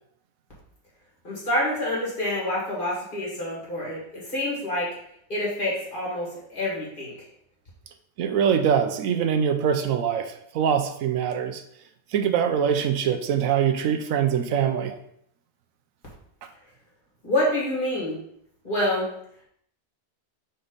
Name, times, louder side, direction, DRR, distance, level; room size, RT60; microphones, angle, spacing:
voice 1, 1.2-4.9 5.3-7.1 17.2-18.2 18.6-19.1, left 1 dB, 40° left, -6 dB, 2.3 m, -27 dB
voice 2, 8.2-11.6 12.1-15.0, right 8 dB, 85° right, 7 dB, 1.1 m, -23 dB
5.4 x 4.4 x 3.9 m, 0.70 s
omnidirectional pair, 1.4 m